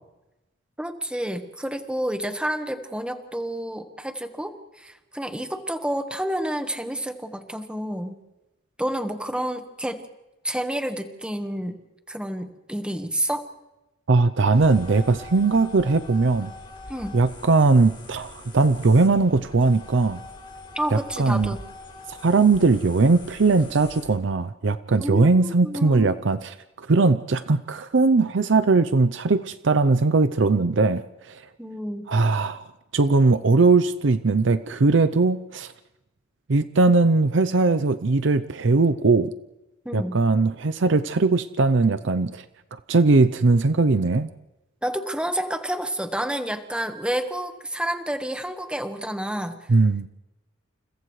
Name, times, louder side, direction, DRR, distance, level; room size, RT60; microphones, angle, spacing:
voice 1, 0.8-8.1 8.8-10.0 10.4-11.8 12.1-13.4 16.9-17.2 20.7-21.6 25.0-26.1 31.6-32.1 39.8-40.2 44.8-49.6, right 1 dB, 5° right, 6 dB, 1.4 m, -29 dB
voice 2, 14.1-16.5 17.1-20.2 20.9-21.5 22.1-31.0 31.3-31.4 32.1-32.6 32.9-35.7 36.5-39.3 39.9-42.4 42.9-44.3 49.7-50.1, right 3 dB, 70° right, 13 dB, 0.6 m, -20 dB
sound 1, 14.5-24.2, left 2 dB, 30° left, 4.3 m, -43 dB
29.5 x 29.5 x 3.2 m, 1.0 s
head